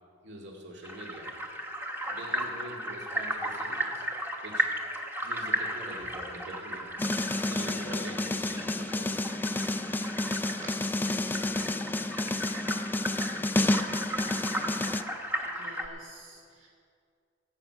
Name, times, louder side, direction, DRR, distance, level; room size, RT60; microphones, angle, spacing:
voice 1, 0.2-1.3 2.1-4.1 4.4-4.7 5.2-7.0 7.5-9.2, right 1 dB, 60° right, -1 dB, 2.2 m, -44 dB
sound 1, 0.8-15.9, right 1 dB, 10° right, 1.0 m, -35 dB
sound 2, 7.0-15.0, left 2 dB, 10° left, 0.3 m, -30 dB
sound 3, 7.1-9.1 9.9-11.1 11.4-13.5, right 2 dB, 45° right, 3.5 m, -52 dB
voice 2, 15.1-16.7, right 2 dB, 80° right, -3 dB, 1.8 m, -52 dB
19.0 x 8.1 x 5.7 m, 2.3 s
head